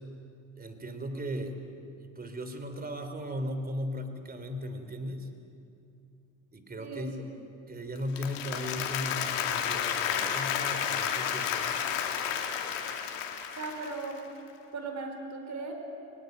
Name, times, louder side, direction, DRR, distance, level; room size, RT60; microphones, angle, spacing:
voice 1, 0.6-1.6 1.9-5.3 6.5-7.2 7.7-11.7, equal, 25° right, 7 dB, 3.3 m, -37 dB
voice 2, 6.8-7.1 13.5-14.2 14.7-15.7, right 3 dB, 45° right, 4 dB, 4.9 m, -37 dB
Applause, 8.0-14.2, left 8 dB, 85° left, 2.4 m, -31 dB
21.5 x 19.0 x 9.2 m, 2.6 s
supercardioid pair, 80°, 38 cm